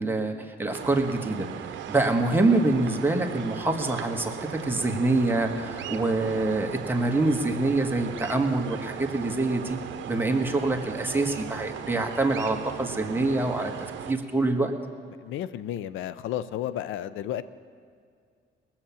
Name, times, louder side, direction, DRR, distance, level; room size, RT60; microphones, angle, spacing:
voice 1, 0.0-1.5 1.9-9.8 10.1-13.7 14.1-14.7, right 2 dB, 10° right, 2 dB, 1.4 m, -25 dB
sound 1, 0.7-14.1, right 9 dB, 70° right, 0.8 m, -38 dB
voice 2, 15.2-17.4, left 11 dB, 85° left, 15 dB, 0.5 m, -32 dB
19.0 x 7.3 x 7.1 m, 2.2 s
cardioid pair, 90°, 20 cm